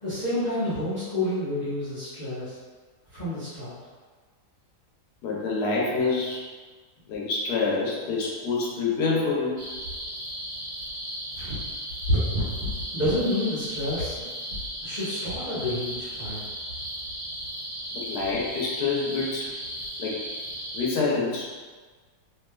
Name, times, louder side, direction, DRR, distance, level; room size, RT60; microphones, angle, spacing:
voice 1, 0.0-2.6 3.1-3.7 12.9-14.3 14.8-16.4, left 1 dB, 30° left, -15 dB, 0.9 m, -29 dB
voice 2, 5.2-6.4 7.1-9.6 17.9-19.5 20.0-20.2 20.7-21.5, left 4 dB, 75° left, -4 dB, 1.2 m, -27 dB
sound 1, 9.6-20.9, equal, 65° right, 1.6 m, -33 dB
3.2 x 2.9 x 2.2 m, 1.4 s
omnidirectional pair, 1.8 m